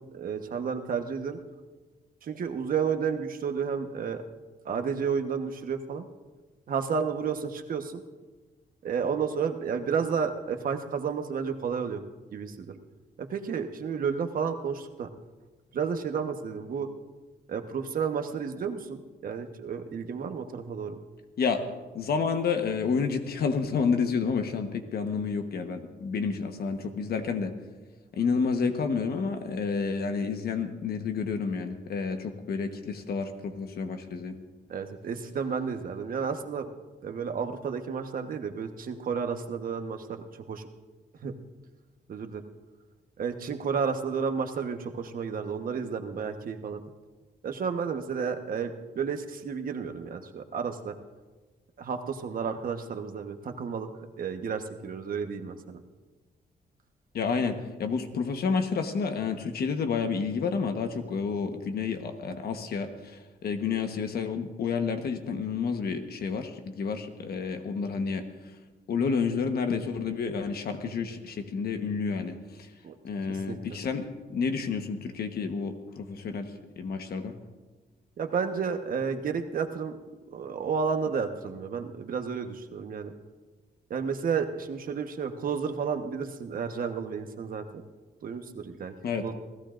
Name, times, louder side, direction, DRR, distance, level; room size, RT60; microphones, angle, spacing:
voice 1, 0.1-1.4 2.2-4.2 4.6-6.1 6.7-8.0 8.8-12.0 12.3-12.8 13.2-15.1 15.7-16.9 17.5-21.0 34.7-36.7 37.0-40.6 41.2-41.3 42.1-42.4 43.2-46.8 47.4-51.0 51.8-53.9 54.2-55.8 72.8-72.9 73.5-73.6 78.2-79.9 80.3-83.1 83.9-87.6 88.2-88.9 89.2-89.3, right 6 dB, 55° right, 6 dB, 1.2 m, -31 dB
voice 2, 21.9-27.5 28.1-34.4 57.1-68.5 68.9-72.7 73.0-77.3 89.0-89.3, left 5 dB, 65° left, 6 dB, 1.2 m, -30 dB
28.0 x 16.5 x 2.6 m, 1.3 s
cardioid pair, 145°, 17 cm